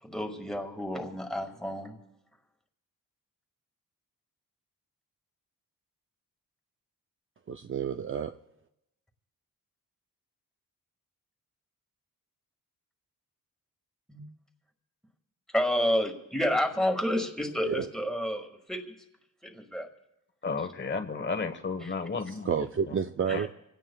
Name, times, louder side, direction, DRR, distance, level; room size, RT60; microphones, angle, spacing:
voice 1, 0.0-1.9 14.1-14.2 15.5-18.9 19.4-19.9 21.8-21.9 23.4-23.5, equal, ahead, 2.0 m, -30 dB
voice 2, 7.5-8.3 17.6-17.9 22.4-23.5, right 7 dB, 40° right, 0.5 m, -30 dB
voice 3, 20.4-22.9 23.3-23.4, left 4 dB, 35° left, 1.2 m, -33 dB
27.0 x 17.0 x 2.3 m
cardioid pair, 100°, 34 cm